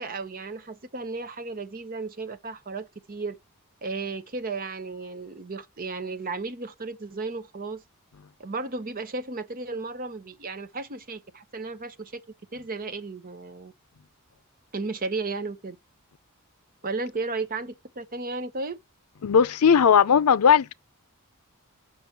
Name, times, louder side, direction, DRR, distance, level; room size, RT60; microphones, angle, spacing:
voice 1, 0.0-3.4 3.8-7.8 8.4-12.2 12.5-13.7 14.7-15.8 16.8-18.8, right 3 dB, 40° right, 0.9 m, -34 dB
voice 2, 19.2-20.7, left 7 dB, 85° left, 0.5 m, -18 dB
6.1 x 5.3 x 5.8 m
head